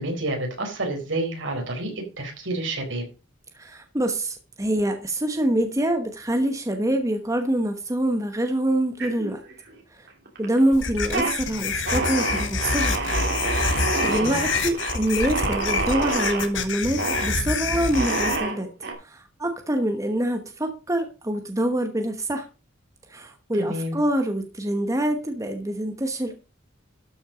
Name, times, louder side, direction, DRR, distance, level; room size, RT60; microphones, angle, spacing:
voice 1, 0.0-3.0 13.9-14.6 23.5-24.0, right 1 dB, 70° right, 2 dB, 4.3 m, -29 dB
voice 2, 3.6-9.4 10.4-13.0 13.6-18.7 19.1-22.4 23.1-26.4, right 1 dB, 15° right, 6 dB, 1.1 m, -25 dB
sound 1, 9.0-9.7 10.1-10.6 10.9-11.3 11.9-16.5 17.0-17.3 17.9-18.9, right 3 dB, 55° right, 3.1 m, -27 dB
sound 2, 10.7-18.4, left 4 dB, 70° left, 1.6 m, -27 dB
12.5 x 6.1 x 5.1 m, 0.32 s
head